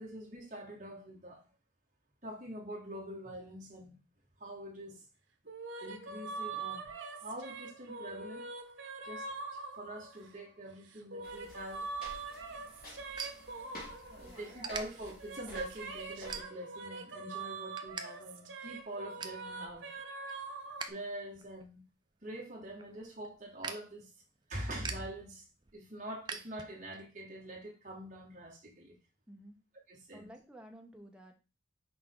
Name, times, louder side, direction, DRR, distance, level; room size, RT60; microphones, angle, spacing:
voice 1, 0.0-1.5 2.2-4.0 4.4-5.1 5.8-8.5 9.0-9.3 9.5-11.9 14.1-19.9 20.9-21.8 22.2-24.1 24.5-25.5 25.7-29.0 29.9-30.3, right 1 dB, 40° right, 2.0 m, -45 dB
sound 1, 5.5-10.4 10.9-14.6 15.0-20.9, right 4 dB, 80° right, 1.0 m, -43 dB
sound 2, 11.2-16.4, left 1 dB, 45° left, 2.5 m, -51 dB
sound 3, 12.1-14.1 14.6-14.8 15.4-15.6 16.3-16.9 17.2-18.1 18.3-18.4 18.8-19.5 19.9-21.0 21.3-27.0, right 5 dB, 25° right, 0.5 m, -45 dB
voice 2, 14.2-14.7 29.3-29.6 30.1-31.3, right 1 dB, 5° right, 0.9 m, -53 dB
6.0 x 4.6 x 3.7 m
head